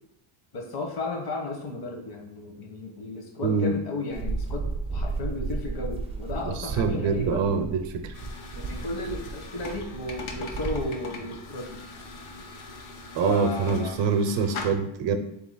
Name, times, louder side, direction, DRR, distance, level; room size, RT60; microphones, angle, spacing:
voice 1, 0.5-7.5 8.5-11.8 13.2-14.0, left 2 dB, 50° left, 1 dB, 1.1 m, -34 dB
voice 2, 3.4-3.7 6.8-8.1 13.1-15.2, right 5 dB, 65° right, 8 dB, 0.6 m, -25 dB
sound 1, 4.1-10.8, right 3 dB, 15° right, 0.5 m, -33 dB
sound 2, 8.1-14.6, left 3 dB, 75° left, 0.9 m, -41 dB
3.9 x 2.9 x 3.8 m, 0.74 s
cardioid pair, 130°, 49 cm